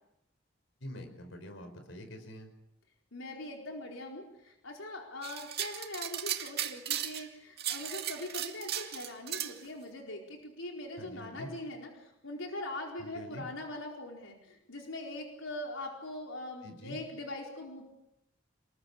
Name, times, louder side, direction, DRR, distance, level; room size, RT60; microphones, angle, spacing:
voice 1, 0.8-2.5 11.0-11.5 13.0-13.4 16.6-17.0, equal, 70° left, 7 dB, 5.0 m, -45 dB
voice 2, 3.1-17.9, left 1 dB, 85° left, 1 dB, 4.5 m, -42 dB
sound 1, 5.2-7.3 7.6-9.5, right 10 dB, 55° right, 2.2 m, -36 dB
27.5 x 21.0 x 8.4 m, 0.84 s
head